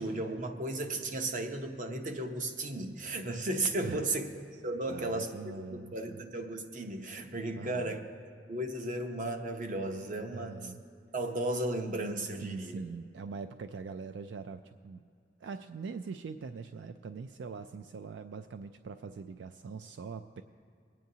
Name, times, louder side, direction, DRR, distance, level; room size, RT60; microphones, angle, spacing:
voice 1, 0.0-4.3 4.6-5.3 5.7-8.0 8.5-10.7 11.1-12.8, right 2 dB, 45° right, 5 dB, 0.8 m, -35 dB
voice 2, 4.9-6.2 7.6-8.0 10.3-10.8 12.4-15.0 15.4-20.4, right 5 dB, 75° right, 9 dB, 0.3 m, -43 dB
24.0 x 9.1 x 2.8 m, 2.4 s
head